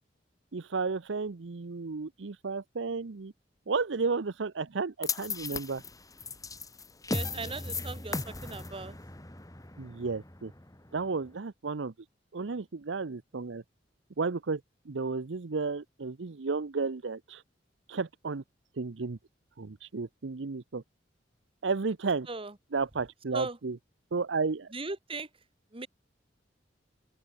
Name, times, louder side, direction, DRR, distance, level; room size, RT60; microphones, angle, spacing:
voice 1, 0.5-3.3 3.7-5.8 9.8-10.5 10.9-11.9 12.3-13.6 14.2-14.6 14.9-17.4 17.9-18.4 18.8-19.2 19.6-20.8 21.6-22.3 22.7-23.8 24.1-24.7, right 4 dB, 85° right, 0.7 m, -33 dB
sound 1, 5.0-11.3, left 3 dB, 20° left, 3.5 m, -37 dB
voice 2, 7.1-9.0 22.3-22.6 23.3-23.6 24.7-25.3 25.7-25.9, right 3 dB, 30° right, 2.2 m, -38 dB
open air
head